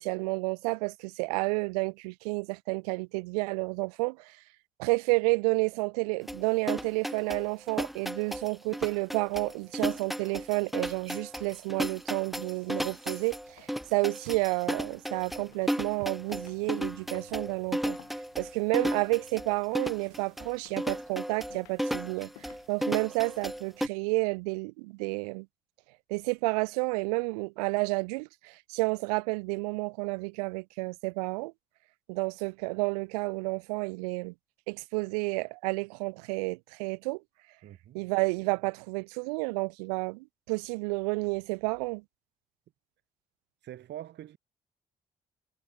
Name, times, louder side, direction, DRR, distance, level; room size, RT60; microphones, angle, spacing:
voice 1, 0.0-4.4 4.8-18.0 18.4-22.3 22.7-25.5 26.1-31.5 32.1-34.3 34.7-37.2 37.9-42.0, right 27 dB, 75° right, 0.5 m, -30 dB
sound 1, 6.3-23.9, equal, ahead, 0.5 m, -34 dB
sound 2, 13.4-23.9, left 24 dB, 75° left, 7.2 m, -60 dB
voice 2, 37.6-38.0 43.6-44.4, right 12 dB, 60° right, 2.2 m, -44 dB
figure-of-eight pair, 40°, 20 cm